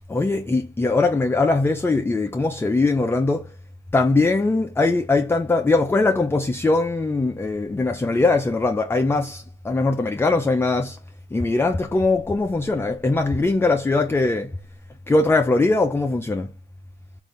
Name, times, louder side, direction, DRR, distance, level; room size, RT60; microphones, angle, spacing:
voice 1, 0.1-3.5 3.9-11.0 11.3-14.6 15.1-16.5, left 3 dB, 10° left, 0.4 m, -21 dB
3.2 x 2.6 x 3.9 m
cardioid pair, 90°, 20 cm